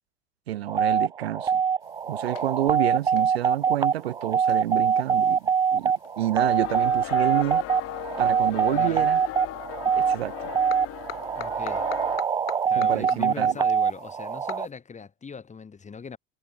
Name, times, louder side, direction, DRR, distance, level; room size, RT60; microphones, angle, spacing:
voice 1, 0.5-1.6 2.0-7.6 8.2-9.2 9.9-10.3 12.7-13.5, right 13 dB, 80° right, 0.6 m, -29 dB
sound 1, 0.7-14.7, right 6 dB, 15° right, 0.4 m, -24 dB
sound 2, 1.8-14.7, left 19 dB, 70° left, 1.4 m, -47 dB
sound 3, 6.4-12.2, left 15 dB, 45° left, 2.8 m, -37 dB
voice 2, 8.7-9.1 11.3-11.9 12.7-16.2, left 5 dB, 25° left, 3.0 m, -40 dB
hypercardioid pair, 75°, 31 cm